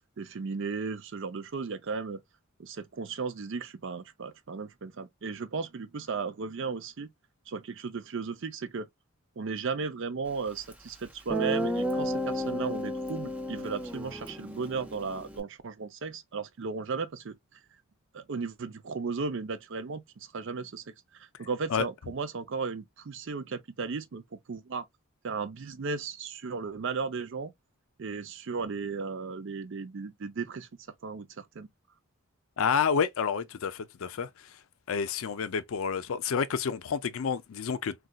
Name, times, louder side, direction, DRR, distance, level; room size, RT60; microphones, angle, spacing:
voice 1, 0.2-2.2 2.6-7.1 7.5-8.9 9.4-17.4 18.1-20.8 21.1-24.9 25.2-27.5 28.0-30.7 31.0-31.7, right 4 dB, 60° right, 0.5 m, -35 dB
Guitar, 10.7-10.8 11.3-15.4, equal, 5° right, 0.5 m, -32 dB
voice 2, 32.6-34.3 34.9-37.9, left 6 dB, 70° left, 0.4 m, -29 dB
3.9 x 2.3 x 2.2 m
head